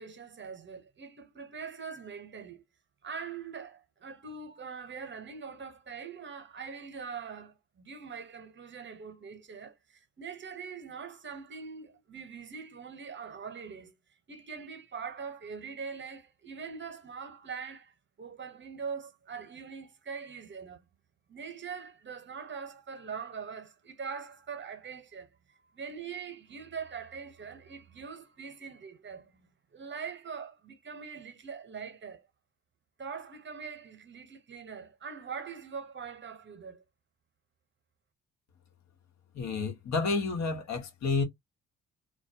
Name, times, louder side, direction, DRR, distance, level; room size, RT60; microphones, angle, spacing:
voice 1, 0.0-2.6 3.0-13.9 14.3-20.8 21.3-32.3 33.0-36.8, right 6 dB, 35° right, 0.9 m, -42 dB
voice 2, 39.3-41.2, left 4 dB, 60° left, 1.1 m, -30 dB
2.3 x 2.1 x 2.7 m
supercardioid pair, 55°, 31 cm